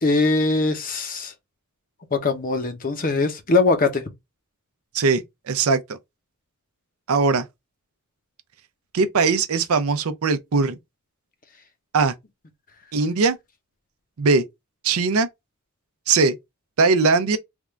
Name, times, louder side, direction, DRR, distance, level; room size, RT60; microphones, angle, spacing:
voice 1, 0.0-1.3 2.1-4.1, left 3 dB, 40° left, 0.7 m, -21 dB
voice 2, 4.9-5.8 7.1-7.4 8.9-10.8 11.9-12.1 12.9-13.4 14.2-14.4 14.8-15.3 16.1-16.3 16.8-17.4, right 4 dB, 75° right, 0.5 m, -20 dB
3.5 x 2.4 x 3.0 m
head